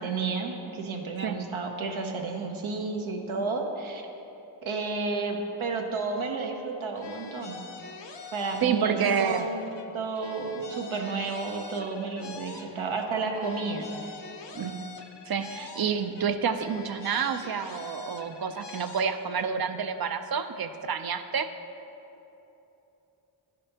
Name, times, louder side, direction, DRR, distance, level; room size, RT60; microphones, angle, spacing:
voice 1, 0.0-4.0 4.6-7.6 8.3-9.7 9.9-14.2, right 4 dB, 80° right, 2 dB, 0.9 m, -32 dB
sound 1, 7.0-9.9 10.1-13.1 13.3-16.3 16.5-19.5, left 4 dB, 60° left, 0.8 m, -44 dB
voice 2, 8.6-9.5 14.5-14.9 15.3-21.5, right 6 dB, 50° right, 9 dB, 0.5 m, -29 dB
11.0 x 5.1 x 2.9 m, 3.0 s
cardioid pair, 45°, 48 cm